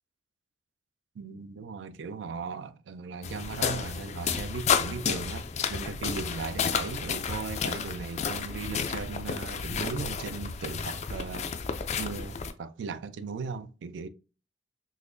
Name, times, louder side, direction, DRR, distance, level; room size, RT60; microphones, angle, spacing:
voice 1, 1.2-11.6 12.0-14.1, right 5 dB, 90° right, 0.4 m, -37 dB
sound 1, 3.2-12.5, left 6 dB, 40° left, 0.3 m, -31 dB
4.0 x 2.9 x 2.6 m
head